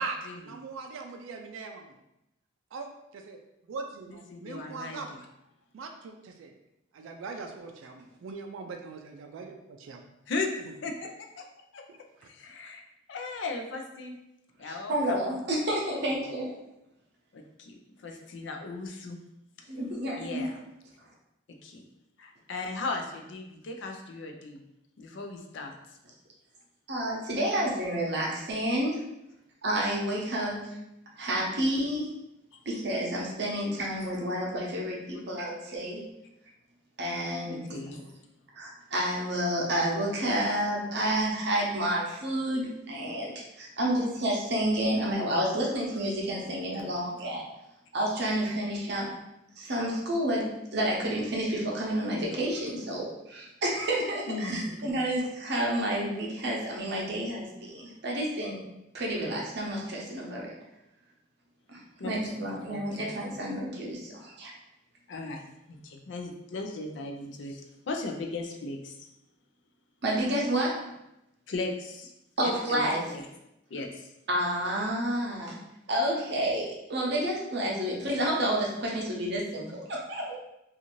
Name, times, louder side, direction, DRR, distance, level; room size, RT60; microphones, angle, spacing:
voice 1, 0.0-2.0 2.7-3.4 3.7-5.1 5.7-6.5 6.9-10.0 12.2-12.3, right 4 dB, 85° right, 4 dB, 0.3 m, -40 dB
voice 2, 4.3-5.2 10.3-10.5 10.8-11.1 11.4-11.5 11.7-11.8 12.2-12.8 13.1-14.1 14.6-14.9 17.3-19.2 20.2-20.6 21.6-21.8 22.2-24.6 25.0-25.8 32.5-32.6 37.4-38.0 54.3-54.8 62.0-62.3 62.7-63.1 65.1-69.1 71.5-72.1 72.4-73.2 73.7-74.1, left 3 dB, 65° left, 3 dB, 0.4 m, -37 dB
voice 3, 14.6-16.5 19.7-20.5 26.9-29.0 29.6-30.6 31.2-32.1 32.7-36.0 37.0-38.1 38.5-43.3 43.6-47.4 47.9-49.1 49.6-50.4 50.7-58.6 58.9-60.5 61.7-64.5 70.0-70.7 72.4-73.1 74.3-75.6 75.9-80.4, right 1 dB, 60° right, -3 dB, 0.7 m, -30 dB
2.6 x 2.4 x 3.0 m, 0.87 s
head